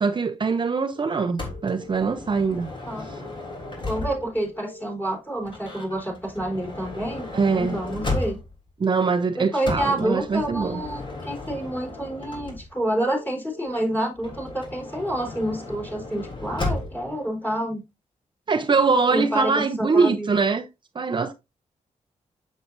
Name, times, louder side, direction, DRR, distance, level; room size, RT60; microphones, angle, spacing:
voice 1, 0.0-2.7 7.3-7.8 8.8-10.8 18.5-20.7 20.9-21.3, right 4 dB, 40° right, 0.6 m, -23 dB
sound 1, 0.9-1.9 3.9-4.9 6.9-7.9 9.9-10.9 12.9-13.9 15.9-16.9, equal, 85° left, 5.0 m, -44 dB
Motor vehicle (road) / Sliding door, 1.4-4.5 5.4-8.7 9.6-12.9 14.1-17.1, left 2 dB, 40° left, 3.2 m, -34 dB
voice 2, 2.9-3.3 3.9-8.4 9.4-17.8 19.1-20.4, right 1 dB, 15° left, 3.8 m, -28 dB
7.7 x 7.3 x 2.6 m
cardioid pair, 75°, 13 cm